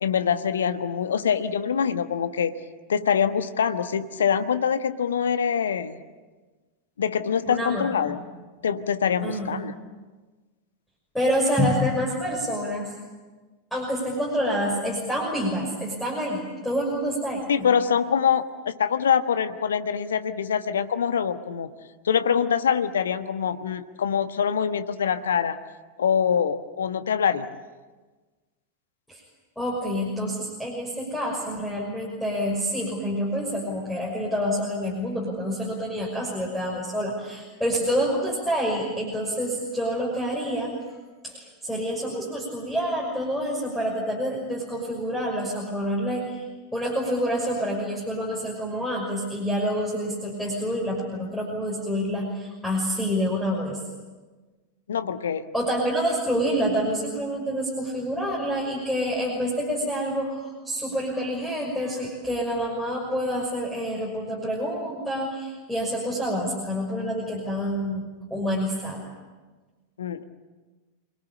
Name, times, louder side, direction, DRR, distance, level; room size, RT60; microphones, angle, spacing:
voice 1, 0.0-2.5 2.9-6.0 7.0-8.2 8.6-9.7 17.5-21.7 22.0-25.6 26.0-27.5 54.9-55.5 70.0-70.2, left 7 dB, 65° left, 10 dB, 1.3 m, -24 dB
voice 2, 7.5-8.2 9.2-9.6 11.1-12.9 13.7-17.7 29.1-29.2 29.6-40.8 41.2-46.4 46.7-53.8 55.5-69.0, equal, 5° left, -3 dB, 6.2 m, -27 dB
28.0 x 21.5 x 8.8 m, 1.3 s
figure-of-eight pair, 90°, 0 cm